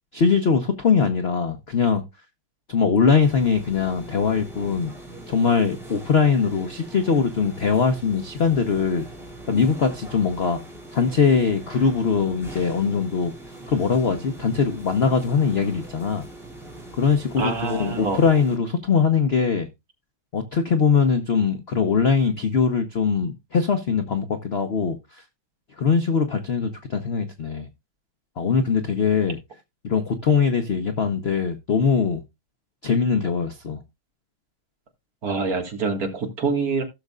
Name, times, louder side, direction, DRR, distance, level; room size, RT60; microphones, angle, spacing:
voice 1, 0.1-2.0 2.7-4.9 5.3-9.0 9.5-10.6 10.9-13.3 13.7-16.2 17.0-19.7 20.3-25.2 25.8-27.7 28.4-29.4 29.8-32.2 32.8-33.8, left 5 dB, 70° left, 0.5 m, -21 dB
sound 1, 3.2-18.6, right 1 dB, ahead, 2.5 m, -41 dB
voice 2, 17.4-18.2 35.2-36.8, right 4 dB, 45° right, 2.2 m, -25 dB
16.5 x 6.5 x 2.4 m
omnidirectional pair, 2.3 m